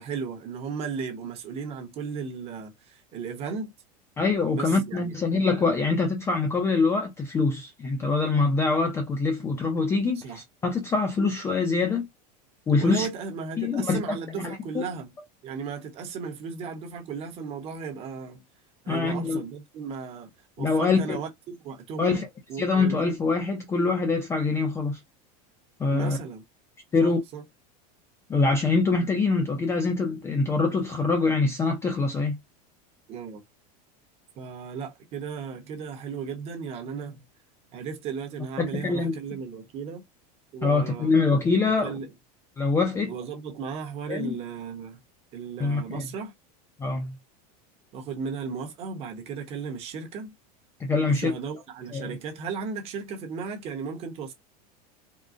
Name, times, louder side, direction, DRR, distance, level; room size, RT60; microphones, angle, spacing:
voice 1, 0.0-3.7 4.5-5.1 10.2-10.4 12.8-15.1 15.4-18.4 18.8-20.3 20.6-22.2 22.5-23.0 25.9-26.4 27.0-27.4 33.1-33.4 34.4-37.2 37.7-40.0 40.5-41.1 41.6-42.1 43.1-45.0 45.3-46.3 47.9-50.3 51.1-54.3, right 5 dB, 30° right, 0.8 m, -35 dB
voice 2, 4.2-12.1 12.7-13.1 13.6-14.9 18.9-19.4 20.6-21.2 22.0-22.3 22.6-25.0 25.8-26.2 26.9-27.2 28.3-32.4 38.6-39.2 40.6-42.0 42.6-43.1 44.1-44.4 45.6-46.1 46.8-47.1 50.8-51.3 51.9-52.1, left 4 dB, 15° left, 0.4 m, -24 dB
3.7 x 2.0 x 2.5 m
supercardioid pair, 165°, 20 cm